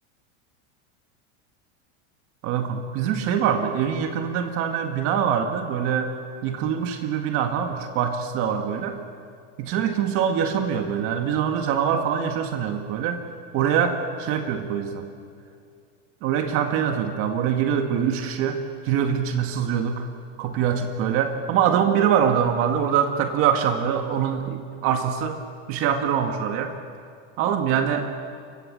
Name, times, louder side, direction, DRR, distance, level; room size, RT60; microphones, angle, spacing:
voice 1, 2.4-6.1 6.4-9.0 9.6-13.2 13.5-15.1 16.2-20.1 20.4-25.4 25.7-26.7 27.4-28.1, right 8 dB, 35° right, 5 dB, 2.0 m, -24 dB
30.0 x 25.0 x 7.8 m, 2.4 s
supercardioid pair, 170°, 36 cm